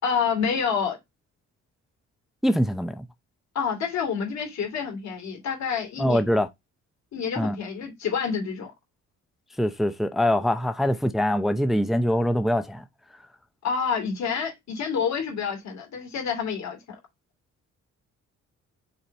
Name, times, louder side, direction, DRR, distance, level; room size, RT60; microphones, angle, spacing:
voice 1, 0.0-1.0 3.5-6.2 7.1-8.7 13.6-16.8, left 6 dB, 65° left, 2.8 m, -28 dB
voice 2, 2.4-3.1 6.0-6.5 7.4-7.6 9.6-12.8, equal, ahead, 0.6 m, -23 dB
5.9 x 4.0 x 4.3 m
cardioid pair, 90°, 30 cm